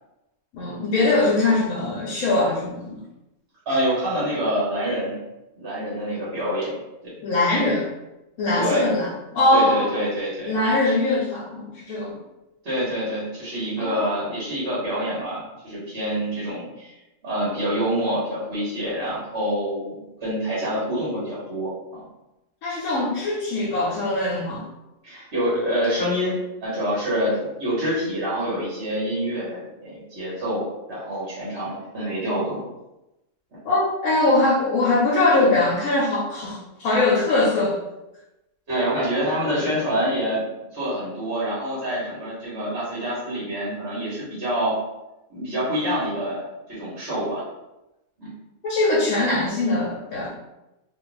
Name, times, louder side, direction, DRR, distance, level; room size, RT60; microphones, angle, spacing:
voice 1, 0.5-3.0 7.2-7.9 8.4-10.0 10.5-12.2 13.8-14.1 22.6-24.6 33.6-37.8 48.6-50.3, left 2 dB, 70° left, -5 dB, 1.1 m, -22 dB
voice 2, 3.6-5.2 5.6-6.8 7.0-7.1 8.5-8.9 9.5-10.6 10.8-10.9 12.6-16.9 17.2-22.0 25.0-32.6 38.7-44.8 45.3-47.4 48.2-48.3, equal, 50° right, -9 dB, 1.4 m, -26 dB
3.0 x 2.5 x 3.2 m, 0.95 s
omnidirectional pair, 1.5 m